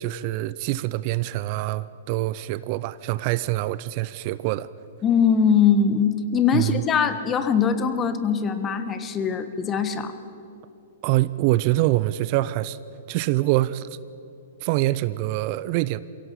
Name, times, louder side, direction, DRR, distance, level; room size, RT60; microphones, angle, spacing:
voice 1, 0.0-4.7 6.5-6.8 11.0-12.8 13.1-13.9 14.6-16.0, right 17 dB, 45° right, 17 dB, 0.5 m, -25 dB
voice 2, 5.0-10.1, left 6 dB, 25° left, 10 dB, 1.4 m, -21 dB
22.5 x 16.5 x 7.3 m, 2.7 s
hypercardioid pair, 115°, 0 cm